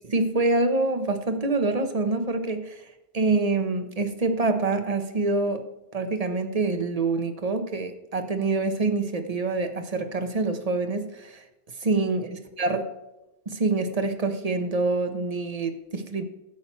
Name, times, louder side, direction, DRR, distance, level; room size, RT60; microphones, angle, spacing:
voice 1, 0.1-2.8 3.1-5.6 5.9-11.4 11.8-12.9 13.5-16.2, right 3 dB, 40° right, 7 dB, 1.2 m, -26 dB
10.5 x 7.6 x 4.5 m, 0.96 s
omnidirectional pair, 1.0 m